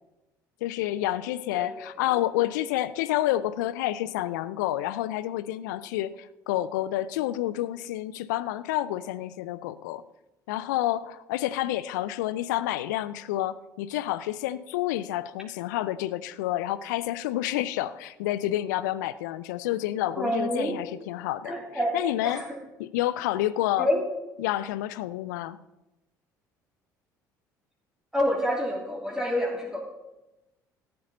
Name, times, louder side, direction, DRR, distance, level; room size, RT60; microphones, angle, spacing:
voice 1, 0.6-10.0 10.5-21.5 21.9-22.4 22.8-23.9 24.4-25.6, left 14 dB, 70° left, 17 dB, 0.5 m, -29 dB
voice 2, 1.5-2.2 20.2-20.9 21.4-21.9 22.2-22.6 23.8-24.0 28.1-29.8, equal, 5° right, -1 dB, 3.0 m, -28 dB
13.5 x 7.7 x 5.4 m, 0.99 s
figure-of-eight pair, 55°, 10 cm